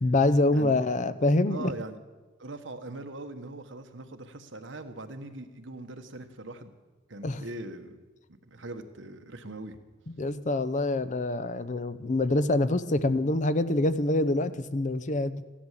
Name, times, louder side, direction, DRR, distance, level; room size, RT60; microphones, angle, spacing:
voice 1, 0.0-1.7 7.2-7.4 10.2-15.4, left 2 dB, 40° left, 13 dB, 0.7 m, -25 dB
voice 2, 0.5-0.8 1.4-2.0 2.4-6.7 7.1-8.0 8.4-9.8, right 2 dB, 80° right, 7 dB, 1.3 m, -41 dB
15.0 x 11.5 x 7.5 m, 1.2 s
head